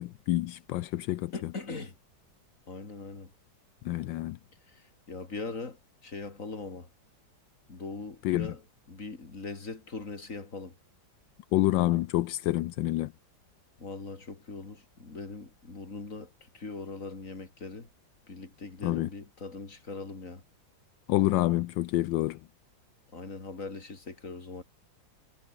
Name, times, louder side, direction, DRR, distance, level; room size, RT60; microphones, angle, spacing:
voice 1, 0.0-1.3 3.8-4.4 8.2-8.5 11.5-13.1 18.8-19.1 21.1-22.4, left 16 dB, 80° left, 1.3 m, -27 dB
voice 2, 1.3-1.9 2.7-3.3 4.7-6.9 7.7-8.6 8.9-10.7 13.8-17.9 18.3-20.4 23.1-24.6, left 3 dB, 40° left, 3.6 m, -41 dB
omnidirectional pair, 2.1 m